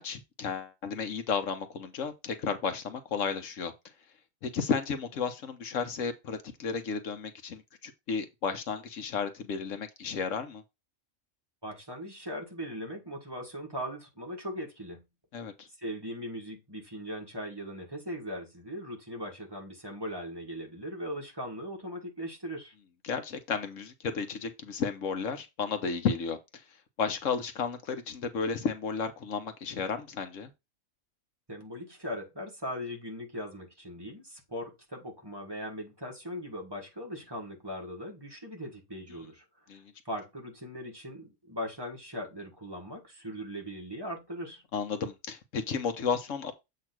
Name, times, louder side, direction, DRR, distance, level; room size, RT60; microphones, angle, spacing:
voice 1, 0.0-3.7 4.4-10.6 15.3-15.7 23.0-26.4 27.0-30.5 39.7-39.8 44.7-46.5, left 5 dB, 75° left, 1.2 m, -33 dB
voice 2, 11.6-15.0 15.8-22.7 31.5-39.4 40.1-44.6, equal, 20° right, 1.7 m, -39 dB
7.6 x 2.9 x 6.0 m
omnidirectional pair, 1.4 m